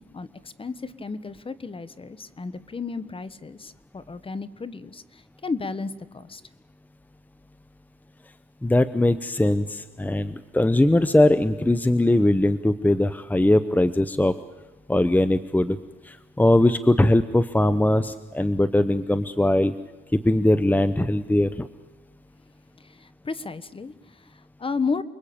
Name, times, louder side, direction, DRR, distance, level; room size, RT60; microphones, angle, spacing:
voice 1, 0.0-6.4 22.8-25.0, left 4 dB, 25° left, 14 dB, 1.4 m, -33 dB
voice 2, 8.6-14.3 14.9-15.8 16.0-19.7 20.1-21.7, left 1 dB, 10° left, 13 dB, 0.9 m, -20 dB
29.5 x 22.0 x 8.8 m, 1.2 s
cardioid pair, 90°, 20 cm